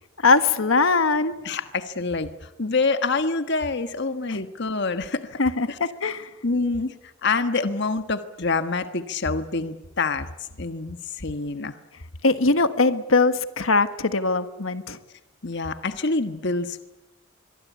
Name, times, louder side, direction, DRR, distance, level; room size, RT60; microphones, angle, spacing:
voice 1, 0.2-1.3 4.3-4.4 5.4-6.3 12.2-15.0, left 3 dB, 85° left, 10 dB, 1.5 m, -21 dB
voice 2, 1.4-5.4 5.7-5.8 6.4-10.3 10.6-11.8 15.4-16.9, left 3 dB, 60° left, 9 dB, 1.4 m, -26 dB
25.0 x 22.5 x 8.4 m, 1.0 s
head